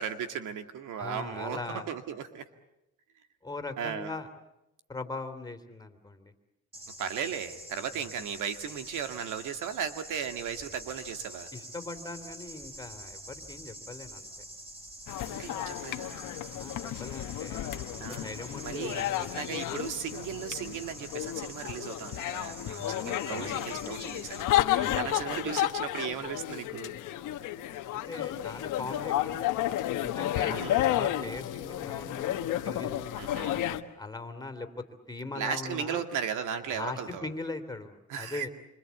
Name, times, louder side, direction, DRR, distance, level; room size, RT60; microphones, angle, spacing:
voice 1, 0.0-2.4 3.8-4.1 7.0-11.5 15.2-16.2 18.0-18.3 18.6-27.0 30.5-30.8 33.2-33.7 35.4-37.3 38.1-38.5, right 7 dB, 85° right, 8 dB, 2.1 m, -36 dB
voice 2, 1.0-1.9 3.4-4.3 4.9-6.3 8.0-8.1 11.5-14.3 16.5-19.4 22.7-23.6 24.8-25.2 27.9-33.2 33.5-36.0 36.7-38.5, left 3 dB, 15° left, 7 dB, 3.1 m, -41 dB
sound 1, 6.7-24.4, right 1 dB, 20° right, 7.0 m, -46 dB
sound 2, 15.1-33.8, left 13 dB, 90° left, 1.3 m, -32 dB
27.0 x 25.5 x 8.3 m, 0.89 s
cardioid pair, 90°, 30 cm